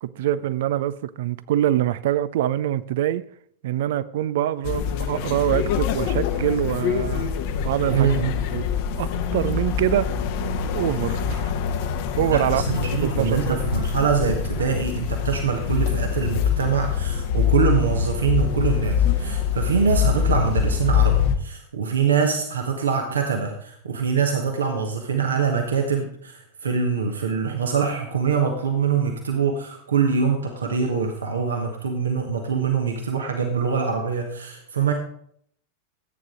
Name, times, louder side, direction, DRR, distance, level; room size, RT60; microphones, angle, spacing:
voice 1, 0.0-3.2 3.6-7.3 7.6-8.1 8.5-8.6 9.0-10.1 10.7-11.5 12.2-12.6 13.0-13.6, right 12 dB, 55° right, 0.5 m, -24 dB
sound 1, 4.6-21.4, left 7 dB, 45° left, 1.1 m, -24 dB
voice 2, 7.9-8.3 12.3-34.9, right 6 dB, 70° right, 1.4 m, -24 dB
14.0 x 9.1 x 3.8 m
figure-of-eight pair, 90°, 0 cm